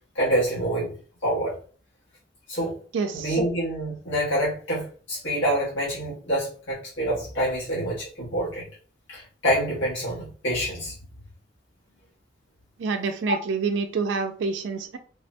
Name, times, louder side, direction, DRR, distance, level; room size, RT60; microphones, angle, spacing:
voice 1, 0.1-0.9 1.2-1.5 2.5-2.8 3.1-8.6 9.1-10.9 13.3-13.4, right 1 dB, 85° left, 1.3 m, -26 dB
voice 2, 2.9-3.4 12.8-15.0, right 4 dB, 75° right, 0.3 m, -27 dB
3.4 x 2.1 x 2.5 m
head